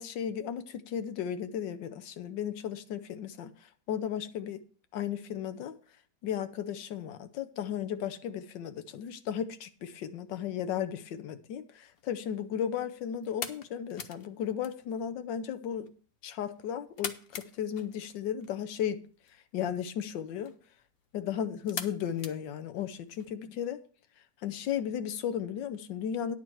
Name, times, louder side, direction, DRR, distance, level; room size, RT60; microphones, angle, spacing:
voice 1, 0.0-4.6 4.9-5.7 6.2-15.9 16.2-19.0 19.5-20.5 21.1-23.8 24.4-26.4, left 9 dB, 90° left, 10 dB, 1.5 m, -35 dB
sound 1, 11.9-23.2, left 6 dB, 55° left, 0.6 m, -46 dB
10.0 x 4.6 x 7.7 m, 0.43 s
omnidirectional pair, 1.9 m